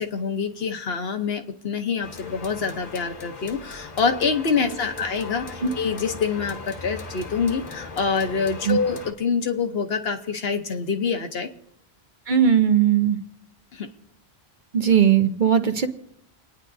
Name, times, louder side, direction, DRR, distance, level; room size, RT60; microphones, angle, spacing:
voice 1, 0.0-11.5 13.7-13.9, left 5 dB, 70° left, 6 dB, 1.1 m, -26 dB
sound 1, 2.0-9.1, left 4 dB, 45° left, 1.1 m, -38 dB
voice 2, 12.3-13.2 14.7-15.9, right 8 dB, 50° right, 7 dB, 0.8 m, -18 dB
29.0 x 9.6 x 2.7 m, 0.77 s
omnidirectional pair, 1.1 m